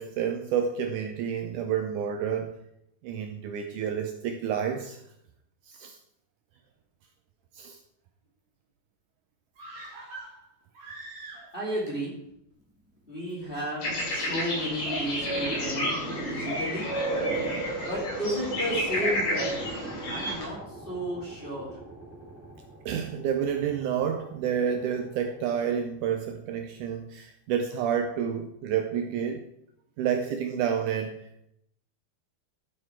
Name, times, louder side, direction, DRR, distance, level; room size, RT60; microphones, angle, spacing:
voice 1, 0.0-2.5 3.0-5.0 5.7-6.0 7.5-7.8 22.9-29.5 30.0-31.2, right 8 dB, 90° right, 5 dB, 1.8 m, -29 dB
sound 1, 9.5-11.8 12.1-12.2, right 2 dB, 40° right, 2.3 m, -44 dB
voice 2, 11.5-12.2 13.1-15.9 16.1-16.9 17.8-19.5 20.1-21.8, equal, 15° left, -5 dB, 2.2 m, -33 dB
sound 2, 13.8-20.4, equal, 65° left, 5.5 m, -31 dB
sound 3, 14.3-25.7, right 2 dB, 5° right, 1.6 m, -39 dB
13.0 x 5.9 x 4.5 m, 0.79 s
omnidirectional pair, 4.4 m